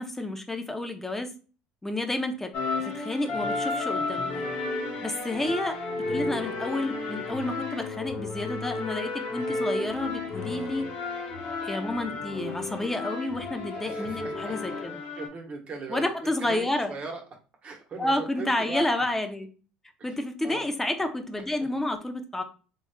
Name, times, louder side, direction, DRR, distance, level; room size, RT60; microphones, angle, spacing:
voice 1, 0.0-1.3 1.8-2.5 2.8-4.5 5.0-5.8 6.1-10.9 11.6-15.0 15.9-16.9 18.0-19.5 20.0-22.4, left 1 dB, 10° left, 6 dB, 0.6 m, -30 dB
sound 1, 2.5-15.3, left 3 dB, 55° left, 1.1 m, -32 dB
voice 2, 13.7-14.6 15.2-17.2 17.6-18.9 20.0-20.1 20.4-20.6 21.6-21.7, right 4 dB, 45° right, 1 dB, 1.1 m, -39 dB
3.5 x 3.1 x 2.3 m, 0.37 s
supercardioid pair, 90°, 3 cm